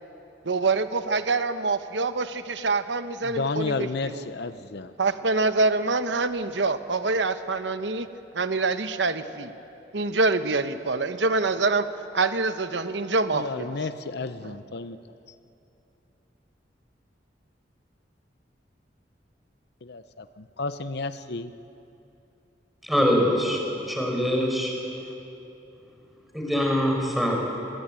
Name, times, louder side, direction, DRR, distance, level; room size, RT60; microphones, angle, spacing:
voice 1, 0.5-4.3 5.0-8.1 8.3-9.5 9.9-11.9 12.1-13.7 14.4-14.5, right 3 dB, 85° right, 10 dB, 1.0 m, -25 dB
voice 2, 3.2-4.9 13.3-15.0 19.8-21.5, left 3 dB, 65° left, 12 dB, 0.7 m, -32 dB
voice 3, 22.8-23.6 23.9-24.7 26.3-27.4, equal, ahead, -1 dB, 5.2 m, -23 dB
24.5 x 21.5 x 8.9 m, 2.8 s
head